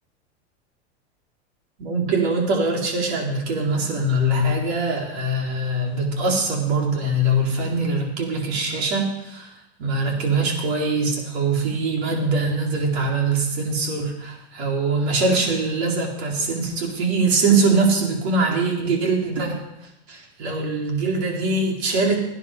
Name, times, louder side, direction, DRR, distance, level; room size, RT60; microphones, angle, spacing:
voice 1, 1.8-9.5 9.8-19.6 20.1-22.2, right 2 dB, 75° right, 0 dB, 4.3 m, -22 dB
18.0 x 9.8 x 5.2 m, 0.85 s
supercardioid pair, 140°, 33 cm